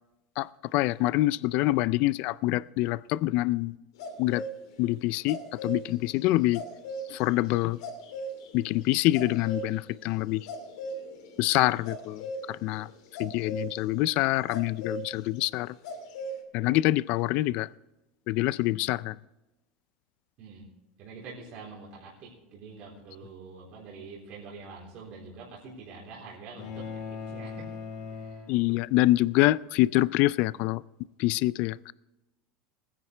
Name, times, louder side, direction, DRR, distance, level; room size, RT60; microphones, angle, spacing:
voice 1, 0.4-3.8 4.2-4.4 4.8-6.6 7.1-7.8 8.5-10.5 11.4-12.9 13.2-15.8 16.5-17.7 18.3-19.2 28.5-30.8 31.2-31.9, left 17 dB, 50° left, 19 dB, 0.3 m, -26 dB
sound 1, 4.0-4.5 5.0-13.7 14.5-15.0 15.4-15.5 15.8-16.4, equal, 85° left, 2.9 m, -38 dB
voice 2, 21.0-26.9 27.3-27.5 28.2-28.4, right 4 dB, 45° right, -4 dB, 3.6 m, -45 dB
sound 2, 26.6-29.1, left 6 dB, 70° left, 3.5 m, -40 dB
20.0 x 9.9 x 3.3 m, 1.0 s
supercardioid pair, 155°, 3 cm